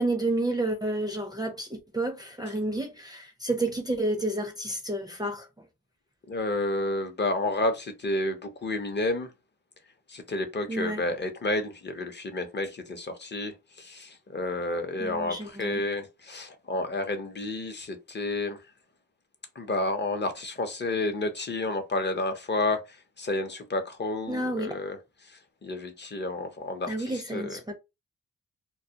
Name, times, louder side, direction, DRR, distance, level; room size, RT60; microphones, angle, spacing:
voice 1, 0.0-5.5 10.7-11.0 15.0-15.8 24.3-24.8 26.9-27.7, right 2 dB, 10° right, 0.5 m, -30 dB
voice 2, 6.3-9.3 10.1-18.6 19.6-27.6, left 2 dB, 30° left, 0.7 m, -31 dB
2.2 x 2.1 x 2.8 m
cardioid pair, 50°, 37 cm